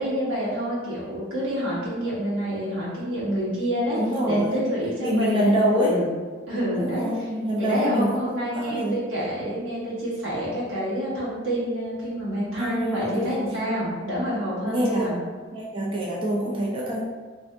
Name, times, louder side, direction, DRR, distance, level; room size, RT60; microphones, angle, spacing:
voice 1, 0.0-4.0 4.2-6.1 6.5-7.2 7.6-15.2, equal, 80° right, -7 dB, 1.4 m, -28 dB
voice 2, 3.9-4.7 5.0-6.0 6.7-9.0 12.6-13.3 14.7-15.1 15.5-17.0, equal, 25° right, -5 dB, 0.5 m, -25 dB
3.4 x 2.6 x 3.5 m, 1.5 s
head